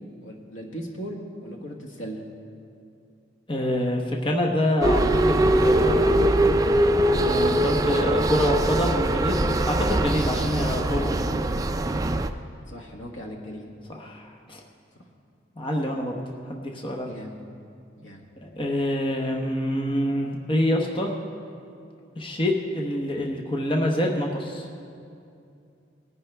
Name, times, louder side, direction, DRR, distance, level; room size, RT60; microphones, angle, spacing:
voice 1, 0.2-2.2 12.7-13.7 17.0-17.3 18.0-18.2, equal, 90° left, 1 dB, 1.6 m, -38 dB
voice 2, 3.5-6.2 7.1-11.3 13.9-14.6 15.6-16.2 16.4-17.1 18.4-21.1 22.2-24.7, left 1 dB, 25° left, 0 dB, 0.9 m, -26 dB
sound 1, 4.8-12.3, right 1 dB, 20° right, 0.3 m, -22 dB
19.5 x 10.5 x 3.4 m, 2.5 s
head